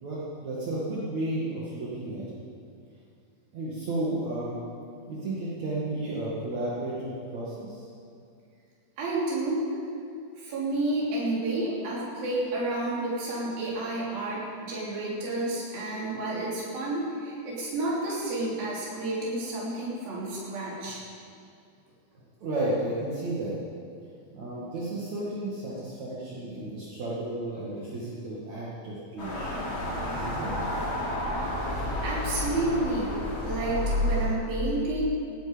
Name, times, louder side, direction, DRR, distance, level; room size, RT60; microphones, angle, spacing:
voice 1, 0.0-2.2 3.5-4.6 5.1-7.9 22.4-23.5 24.3-29.6 30.1-30.5, right 1 dB, 55° right, -7 dB, 3.2 m, -33 dB
voice 2, 9.0-9.7 10.4-21.0 32.0-33.2 33.4-35.0, right 2 dB, 75° right, -5 dB, 4.9 m, -30 dB
sound 1, 29.2-34.3, left 1 dB, 35° left, 4.3 m, -30 dB
18.5 x 12.5 x 5.2 m, 2.4 s
omnidirectional pair, 4.2 m